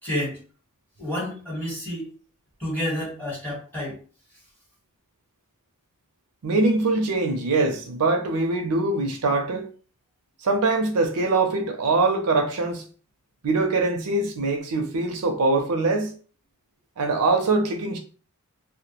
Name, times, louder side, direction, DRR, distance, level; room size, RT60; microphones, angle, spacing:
voice 1, 0.0-0.4 1.0-2.1 2.6-4.0, left 1 dB, 10° left, 1.4 m, -29 dB
voice 2, 6.4-9.7 10.4-12.8 13.4-16.1 17.0-18.0, right 3 dB, 90° right, 0.5 m, -23 dB
2.2 x 2.1 x 2.9 m
head